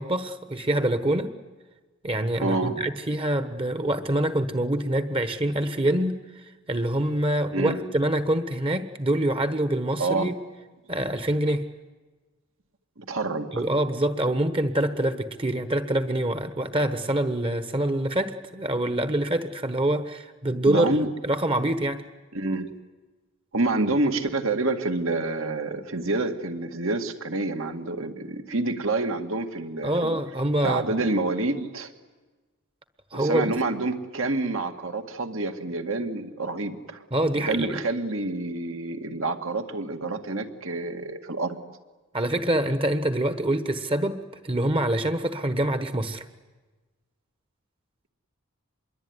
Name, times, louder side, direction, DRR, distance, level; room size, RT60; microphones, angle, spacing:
voice 1, 0.0-1.3 2.0-6.2 6.7-10.3 10.9-11.7 13.5-20.9 21.2-22.0 29.8-30.8 33.1-33.5 37.1-37.8 42.1-46.2, right 1 dB, 25° right, 11 dB, 1.3 m, -25 dB
voice 2, 2.4-2.8 7.5-7.8 10.0-10.3 13.0-13.7 20.7-21.1 22.3-22.7 23.5-30.2 30.6-31.9 33.1-37.0 37.3-41.6, right 2 dB, 65° right, 6 dB, 2.1 m, -28 dB
26.0 x 22.5 x 9.7 m, 1.2 s
head